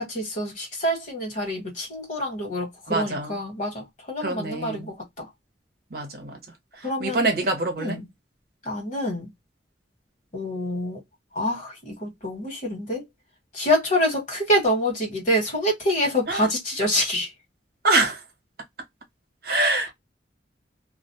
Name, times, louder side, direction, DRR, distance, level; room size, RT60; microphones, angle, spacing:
voice 1, 0.0-5.3 6.8-7.5 7.8-8.1 8.6-9.3 10.3-11.0 11.3-13.0 13.5-17.3, equal, 45° left, 1.3 m, -26 dB
voice 2, 2.9-3.4 4.2-4.9 5.9-6.4 6.8-8.0 16.3-16.5 17.8-18.2 19.4-19.9, right 2 dB, 55° right, 0.9 m, -25 dB
2.5 x 2.0 x 2.7 m
head